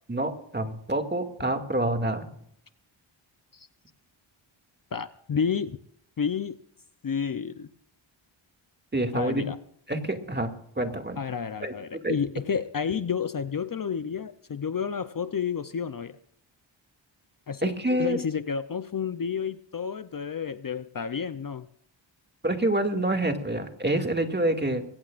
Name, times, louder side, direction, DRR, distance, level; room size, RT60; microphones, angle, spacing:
voice 1, 0.1-2.3 8.9-9.4 9.9-10.5 10.8-11.2 11.6-11.7 12.0-12.2 17.6-18.2 22.4-24.8, right 1 dB, 20° right, 5 dB, 2.4 m, -27 dB
voice 2, 4.9-5.8 6.2-6.6 7.0-7.7 9.1-9.6 11.2-16.2 17.5-17.7 18.0-21.7, left 6 dB, 45° left, 12 dB, 0.7 m, -30 dB
21.5 x 17.5 x 2.5 m, 0.67 s
wide cardioid pair, 85°, 49 cm